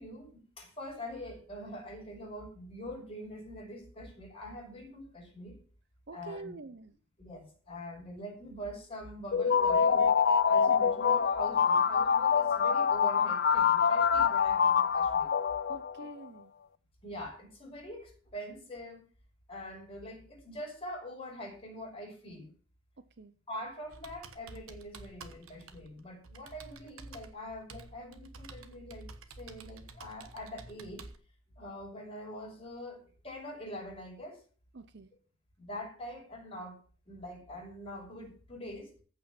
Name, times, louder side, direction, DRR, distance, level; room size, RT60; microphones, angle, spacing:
voice 1, 0.0-5.6 6.1-6.6 7.2-10.1 10.4-15.3 17.0-19.0 19.5-22.5 23.5-31.1 31.6-33.0 33.2-34.4 35.6-36.8 37.1-38.9, equal, 25° left, -2 dB, 5.6 m, -44 dB
voice 2, 6.1-6.9 10.7-10.8 15.7-16.5 23.2-23.3 34.7-35.1, right 3 dB, 50° right, 12 dB, 0.6 m, -46 dB
sound 1, 9.3-16.1, left 6 dB, 45° left, 0.5 m, -25 dB
Computer keyboard, 23.9-31.2, right 3 dB, 70° right, 1.2 m, -50 dB
15.0 x 5.8 x 5.9 m, 0.43 s
head